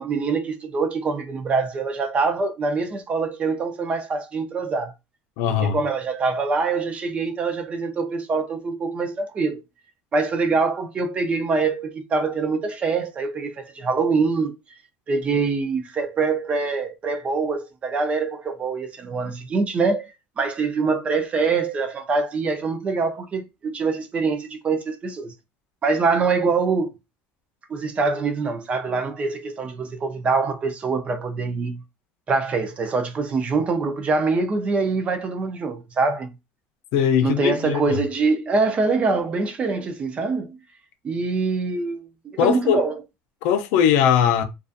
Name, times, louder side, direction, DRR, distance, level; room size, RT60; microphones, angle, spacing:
voice 1, 0.0-4.9 5.6-9.6 10.1-14.6 15.1-20.1 20.4-25.3 25.8-26.9 27.7-31.8 32.3-36.3 37.2-40.6 41.0-42.9, right 4 dB, 25° right, 0.4 m, -24 dB
voice 2, 5.4-5.8 36.9-38.0 42.4-42.8 43.4-44.4, left 8 dB, 75° left, 0.5 m, -20 dB
2.4 x 2.3 x 2.6 m
cardioid pair, 150°, 5 cm